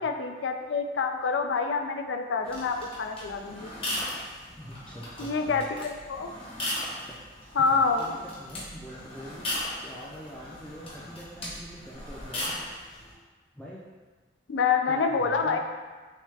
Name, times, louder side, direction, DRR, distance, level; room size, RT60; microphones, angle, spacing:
voice 1, 0.0-3.7 5.2-6.3 7.6-8.1 14.5-15.6, left 5 dB, 75° left, 5 dB, 0.4 m, -27 dB
sound 1, 2.4-13.1, left 1 dB, 30° left, 1.0 m, -38 dB
voice 2, 4.6-5.6 7.1-7.2 7.6-12.6 13.6-13.8 14.9-15.6, equal, 5° left, -7 dB, 0.4 m, -44 dB
6.3 x 2.3 x 3.3 m, 1.4 s
head